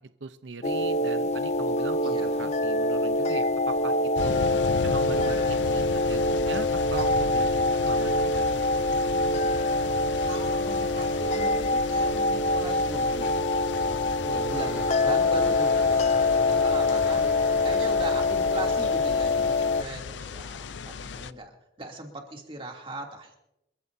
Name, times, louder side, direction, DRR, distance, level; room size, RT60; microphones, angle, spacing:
voice 1, 0.0-4.5 4.8-8.5, right 4 dB, 90° right, 10 dB, 0.7 m, -40 dB
sound 1, 0.6-19.8, left 2 dB, 40° left, 0.5 m, -25 dB
voice 2, 2.0-2.5 10.2-16.1 16.5-17.2 17.6-23.4, right 1 dB, 30° right, 1 dB, 2.8 m, -39 dB
sound 2, 4.1-21.3, left 5 dB, 90° left, 0.5 m, -37 dB
sound 3, 4.2-19.5, equal, 10° right, 5.4 m, -42 dB
27.0 x 14.5 x 2.7 m, 0.85 s
head